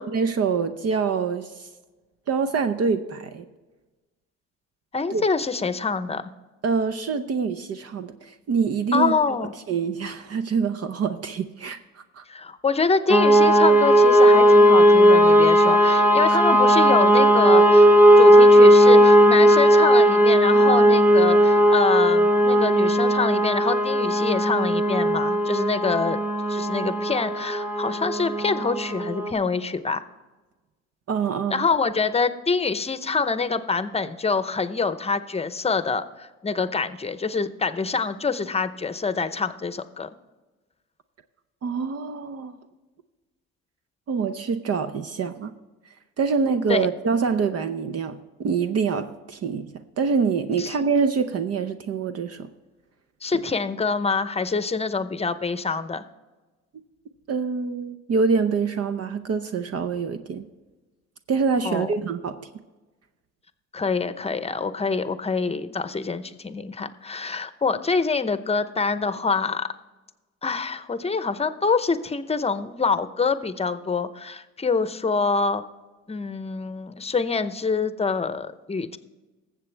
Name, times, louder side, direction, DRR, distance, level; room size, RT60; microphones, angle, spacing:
voice 1, 0.0-1.7 2.3-3.4 5.1-5.3 6.6-9.1 9.7-12.2 16.3-16.4 31.1-31.6 41.6-42.6 44.1-45.5 46.2-52.5 57.3-60.4 61.3-62.5, right 5 dB, 55° right, 0.7 m, -25 dB
voice 2, 4.9-6.2 8.9-9.5 12.3-17.9 18.2-26.2 26.5-30.0 31.5-40.1 46.7-46.9 50.6-50.8 53.2-56.0 61.6-61.9 63.7-69.7 70.4-75.6 76.1-79.0, left 4 dB, 20° left, 0.7 m, -25 dB
sound 1, 13.1-29.3, equal, 5° right, 1.1 m, -16 dB
20.0 x 7.5 x 3.4 m
cardioid pair, 90°, 30 cm